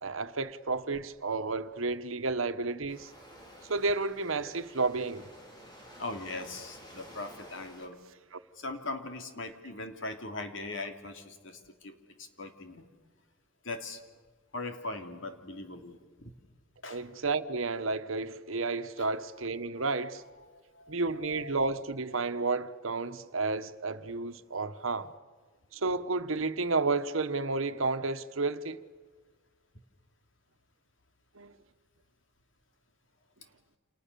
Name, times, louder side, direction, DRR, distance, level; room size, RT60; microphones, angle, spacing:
voice 1, 0.0-3.1 3.7-5.3 8.3-8.4 16.9-20.2 20.9-25.1 25.7-28.8 31.3-31.5, right 3 dB, 80° right, 1.3 m, -31 dB
Waves surf, 2.9-7.9, equal, 20° left, 5.2 m, -52 dB
voice 2, 6.0-8.0 8.6-12.8 13.6-14.0 14.5-16.3 16.8-17.0 19.0-19.4 19.7-20.1 20.5-21.5, left 2 dB, 65° left, 3.1 m, -40 dB
29.5 x 29.0 x 7.0 m
head